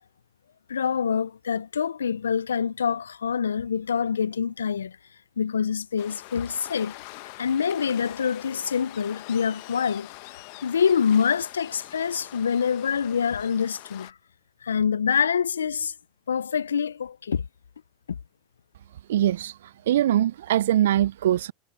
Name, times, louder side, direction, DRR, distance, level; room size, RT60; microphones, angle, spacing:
voice 1, 0.7-5.0 5.4-7.0 7.4-10.1 10.6-14.1 14.6-15.9 16.3-17.5 18.1-18.2, left 7 dB, 85° left, 0.5 m, -25 dB
Waves surf, 6.0-14.1, left 28 dB, 60° left, 1.2 m, -44 dB
voice 2, 19.1-21.5, right 12 dB, 75° right, 0.4 m, -22 dB
hypercardioid pair, 85°, 0 cm